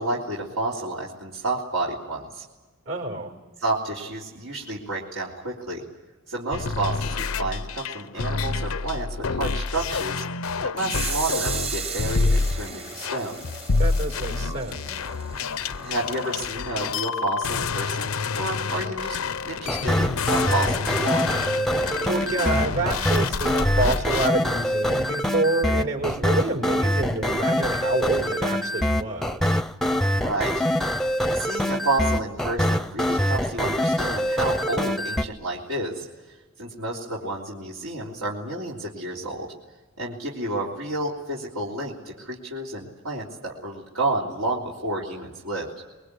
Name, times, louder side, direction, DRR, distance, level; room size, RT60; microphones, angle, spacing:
voice 1, 0.0-2.4 3.6-5.8 6.3-10.2 10.6-13.3 15.8-19.2 19.4-21.3 30.1-30.6 31.0-36.1 36.6-39.5 40.0-45.7, right 2 dB, 85° right, -5 dB, 3.7 m, -30 dB
voice 2, 2.8-3.3 13.8-15.0 22.1-29.6, right 2 dB, 65° right, 3 dB, 5.1 m, -28 dB
sound 1, 6.5-24.3, left 4 dB, 90° left, 0.7 m, -28 dB
sound 2, 10.9-16.5, right 5 dB, 30° right, 1.3 m, -35 dB
sound 3, 19.7-35.2, equal, ahead, 0.7 m, -24 dB
23.0 x 22.5 x 8.4 m, 1.2 s
head